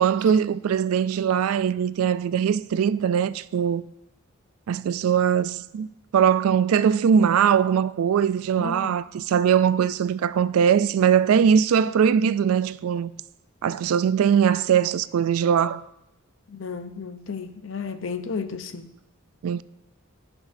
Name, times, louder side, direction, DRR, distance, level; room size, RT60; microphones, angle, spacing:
voice 1, 0.0-3.8 4.7-5.9 6.1-13.1 13.6-15.8 19.4-19.6, right 7 dB, 80° right, 0.3 m, -21 dB
voice 2, 8.6-9.0 16.5-18.8, left 5 dB, 60° left, 0.6 m, -33 dB
16.5 x 6.1 x 2.6 m
head